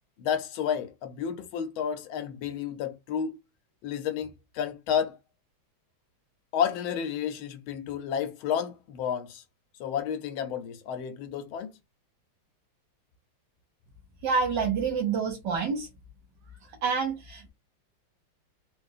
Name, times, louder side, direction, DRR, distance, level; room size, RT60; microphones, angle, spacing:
voice 1, 0.2-3.3 3.8-5.2 6.5-9.4 9.8-11.7, left 8 dB, 90° left, 1.5 m, -31 dB
voice 2, 14.2-15.9 16.6-17.5, right 5 dB, 65° right, 1.4 m, -28 dB
4.0 x 2.4 x 2.6 m
omnidirectional pair, 2.2 m